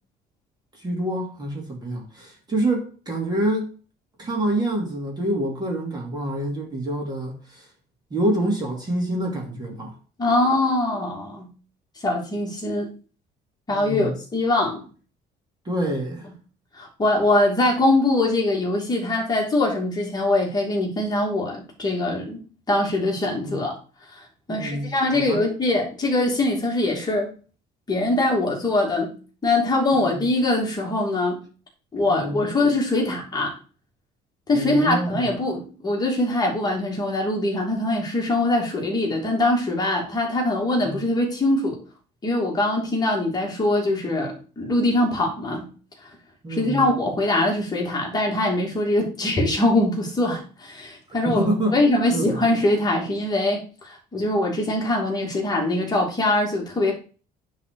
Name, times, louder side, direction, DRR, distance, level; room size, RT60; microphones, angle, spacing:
voice 1, 0.7-3.7 4.2-7.7 8.1-9.9 13.7-14.2 15.6-16.3 23.4-23.6 24.5-25.4 29.9-30.1 32.1-32.4 34.5-35.3 40.8-41.0 46.4-46.8 51.2-51.8 52.1-52.4, right 1 dB, 25° right, 2.7 m, -26 dB
voice 2, 10.2-11.5 12.0-12.9 13.7-14.8 16.7-22.4 22.7-23.8 24.1-24.2 24.5-27.3 27.9-29.1 29.4-31.4 31.9-33.5 34.5-41.8 42.2-45.7 46.5-51.5 51.7-56.9, left 2 dB, 20° left, 2.7 m, -22 dB
9.9 x 4.1 x 6.4 m
cardioid pair, 145°, 18 cm